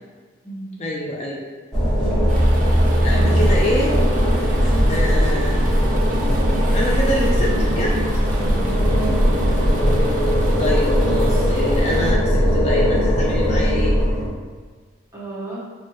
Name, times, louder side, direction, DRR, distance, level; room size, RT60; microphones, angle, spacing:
voice 1, 0.8-1.4 3.0-4.0 4.9-5.6 6.7-8.0 10.6-13.9, left 1 dB, 35° left, -4 dB, 0.4 m, -25 dB
sound 1, 1.7-14.3, equal, ahead, 1.0 m, -18 dB
sound 2, 2.3-12.1, right 1 dB, 40° right, 0.5 m, -32 dB
voice 2, 3.1-3.7 4.5-5.3 8.2-9.6 15.1-15.6, right 1 dB, 15° right, -8 dB, 0.8 m, -34 dB
4.4 x 2.2 x 2.9 m, 1.5 s
head